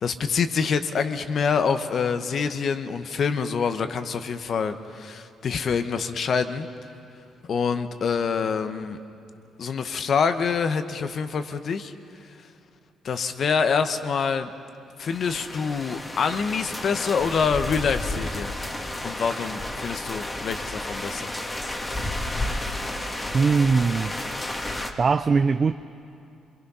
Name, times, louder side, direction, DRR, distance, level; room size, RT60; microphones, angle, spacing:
voice 1, 0.0-6.7 7.5-9.0 9.6-11.9 13.0-14.5 15.0-18.5 19.0-21.3, left 6 dB, 55° left, 1.0 m, -26 dB
sound 1, 15.0-24.9, left 1 dB, 20° left, 1.7 m, -32 dB
voice 2, 23.3-24.1 25.0-25.7, right 5 dB, 40° right, 0.5 m, -20 dB
25.5 x 22.5 x 5.6 m
cardioid pair, 90°, 0 cm